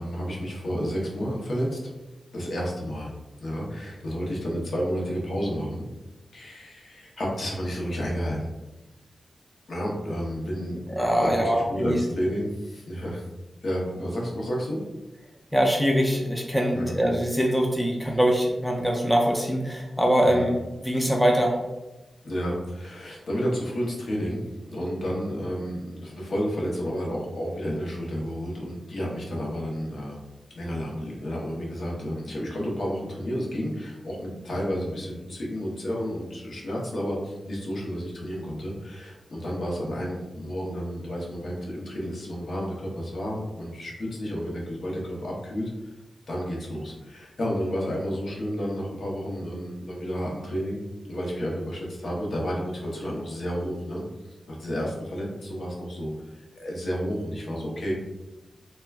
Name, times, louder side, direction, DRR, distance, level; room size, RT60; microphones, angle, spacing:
voice 1, 0.0-1.8 2.3-3.1 3.4-5.9 6.3-8.5 9.7-13.2 13.6-14.8 16.7-17.0 20.2-20.4 22.2-24.4 24.7-30.2 30.5-45.7 46.3-50.8 51.0-57.9, equal, 60° left, -2 dB, 0.7 m, -31 dB
voice 2, 10.9-12.0 15.5-20.6 20.8-21.6, equal, ahead, -1 dB, 0.3 m, -23 dB
2.3 x 2.2 x 3.3 m, 1.0 s
wide cardioid pair, 140°, 0 cm